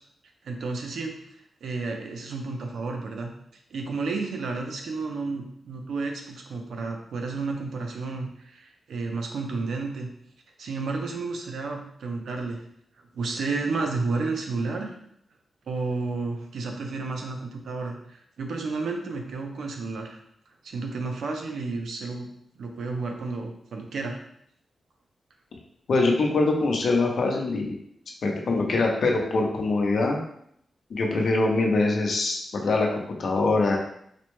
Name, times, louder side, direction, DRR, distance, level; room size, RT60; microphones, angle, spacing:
voice 1, 0.4-1.1 1.6-3.3 3.7-10.1 10.6-12.7 13.1-15.0 15.7-20.2 20.6-22.3 22.6-24.2, right 3 dB, 85° right, 3 dB, 0.5 m, -31 dB
voice 2, 25.9-27.8 28.2-30.2 30.9-33.8, left 3 dB, 60° left, 1 dB, 0.6 m, -23 dB
4.2 x 2.1 x 3.0 m, 0.70 s
wide cardioid pair, 155°, 0 cm